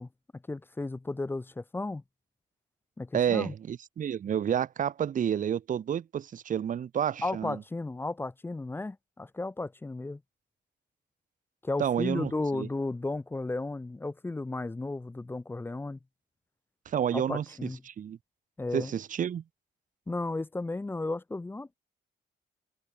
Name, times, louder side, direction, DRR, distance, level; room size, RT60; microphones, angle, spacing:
voice 1, 0.0-2.0 3.0-3.5 7.2-10.2 11.6-16.0 17.1-17.8 18.6-18.9 20.1-21.8, left 2 dB, 10° left, 0.4 m, -34 dB
voice 2, 3.1-7.6 11.8-12.7 16.9-17.4 17.9-18.2 18.7-19.4, right 9 dB, 40° right, 0.6 m, -30 dB
cardioid pair, 90°, 20 cm